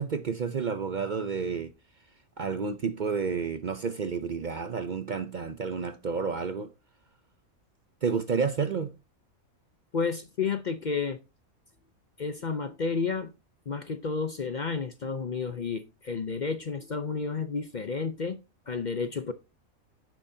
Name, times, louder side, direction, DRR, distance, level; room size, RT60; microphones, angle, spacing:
voice 1, 0.0-1.7 2.4-6.7 8.0-8.9, right 5 dB, 55° right, 0.5 m, -30 dB
voice 2, 9.9-11.2 12.2-13.3 13.7-18.4 18.7-19.3, left 5 dB, 50° left, 0.6 m, -31 dB
9.9 x 9.1 x 2.7 m
omnidirectional pair, 1.5 m